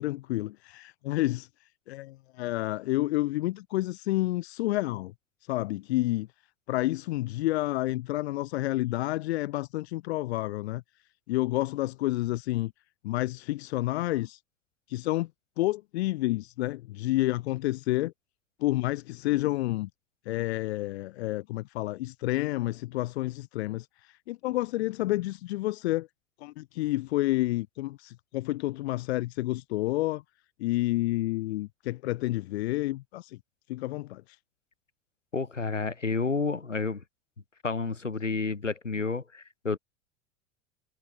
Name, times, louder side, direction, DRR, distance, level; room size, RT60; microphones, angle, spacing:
voice 1, 0.0-1.5 1.9-5.1 5.5-6.3 6.7-10.8 11.3-12.7 13.0-14.4 14.9-15.3 15.6-18.1 18.6-19.9 20.3-26.1 26.4-30.2 30.6-33.4 33.7-34.2, left 17 dB, 60° left, 1.0 m, -29 dB
voice 2, 35.3-37.0 37.6-39.8, left 4 dB, 90° left, 6.1 m, -30 dB
figure-of-eight pair, 85°, 36 cm